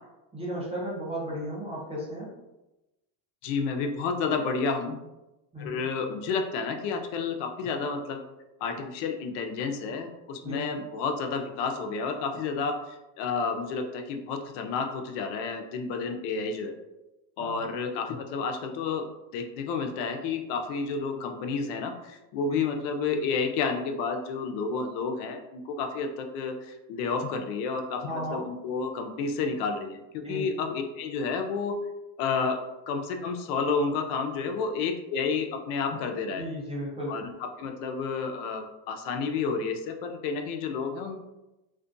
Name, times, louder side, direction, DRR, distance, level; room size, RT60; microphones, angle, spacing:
voice 1, 0.3-2.3 5.5-5.8 10.4-10.8 17.4-17.7 22.5-22.6 28.0-28.4 30.2-30.5 36.4-37.1, equal, 15° right, -6 dB, 0.5 m, -35 dB
voice 2, 3.4-5.0 5.6-8.2 8.6-16.8 17.4-19.1 19.3-30.0 30.3-31.7 32.2-32.6 32.9-36.5 37.1-37.3 37.6-41.2, left 5 dB, 75° left, 5 dB, 0.5 m, -30 dB
2.4 x 2.1 x 2.5 m, 0.99 s
cardioid pair, 135°, 49 cm